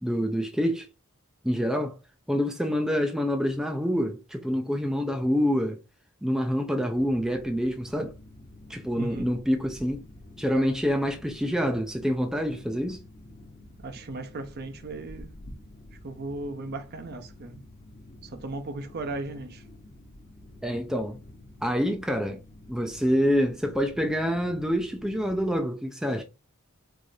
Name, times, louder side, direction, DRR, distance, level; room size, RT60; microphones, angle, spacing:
voice 1, 0.0-0.9 1.4-2.0 2.3-5.8 6.2-8.1 8.7-10.0 10.4-13.0 20.6-21.2 21.6-22.4 22.7-26.2, equal, 5° right, 0.4 m, -26 dB
sound 1, 6.9-25.6, left 1 dB, 40° left, 1.0 m, -49 dB
voice 2, 8.9-9.3 13.8-15.3 16.0-17.6 18.2-19.6, right 2 dB, 45° right, 0.6 m, -36 dB
4.7 x 2.5 x 2.6 m
head